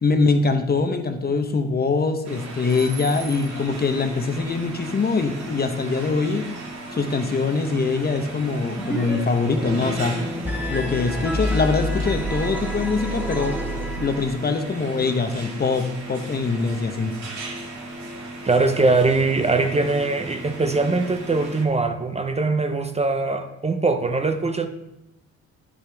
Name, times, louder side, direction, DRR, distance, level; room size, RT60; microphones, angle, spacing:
voice 1, 0.0-6.5 6.9-10.2 10.7-13.6 14.0-17.1, left 4 dB, 30° left, 0.9 m, -23 dB
sound 1, 2.2-21.6, right 2 dB, 65° right, 2.1 m, -36 dB
sound 2, 8.8-9.2 9.4-14.4, equal, 5° right, 1.9 m, -28 dB
voice 2, 18.4-24.7, right 3 dB, 20° right, 0.6 m, -21 dB
9.3 x 6.2 x 3.4 m
cardioid pair, 90°, 30 cm